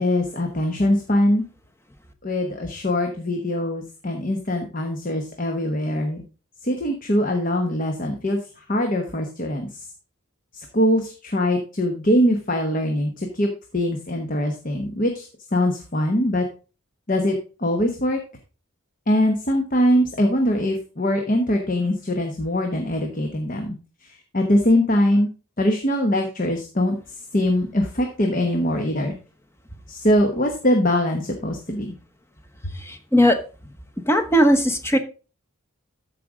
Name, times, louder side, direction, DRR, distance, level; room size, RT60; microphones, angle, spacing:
voice 1, 0.0-1.4 2.2-6.2 6.6-8.4 8.7-9.9 10.7-16.4 17.1-18.2 19.1-23.8 24.0-25.3 25.6-27.0 27.3-29.1 29.9-31.9 32.6-32.7, left 1 dB, 40° left, 4 dB, 1.1 m, -22 dB
voice 2, 32.9-33.4 34.1-35.0, equal, 10° left, 6 dB, 0.9 m, -18 dB
13.5 x 5.1 x 3.7 m, 0.34 s
head